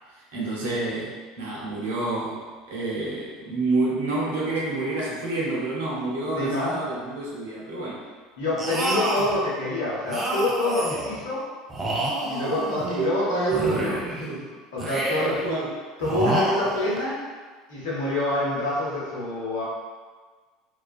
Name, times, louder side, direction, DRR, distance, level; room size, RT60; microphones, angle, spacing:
voice 1, 0.1-1.1 1.4-8.0 12.3-14.5 15.2-15.7 16.2-16.4, right 3 dB, 80° right, -5 dB, 0.7 m, -29 dB
voice 2, 6.4-6.8 8.4-11.4 12.3-14.3 14.7-15.4 16.0-17.2 17.7-19.6, left 1 dB, 75° left, -6 dB, 0.7 m, -26 dB
sound 1, 8.6-9.4 10.1-11.2 11.7-13.1 13.5-14.3 14.8-15.5 16.0-17.0, right 1 dB, 30° right, 0.5 m, -28 dB
2.3 x 2.3 x 2.4 m, 1.4 s
hypercardioid pair, 75°, 0 cm